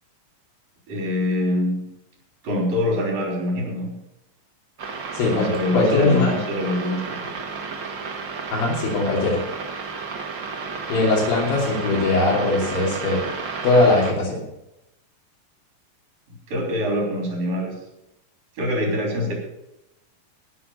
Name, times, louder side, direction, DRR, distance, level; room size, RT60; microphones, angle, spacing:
voice 1, 0.9-1.9 2.4-4.0 5.3-7.3 16.5-17.7 18.6-19.3, left 1 dB, 70° right, 0 dB, 5.2 m, -24 dB
sound 1, 4.8-14.1, right 5 dB, 45° right, 1.6 m, -32 dB
voice 2, 5.1-6.3 8.5-9.4 10.9-13.2 13.6-14.4, left 2 dB, 85° left, -2 dB, 4.6 m, -20 dB
16.5 x 6.3 x 6.9 m, 0.87 s
omnidirectional pair, 4.0 m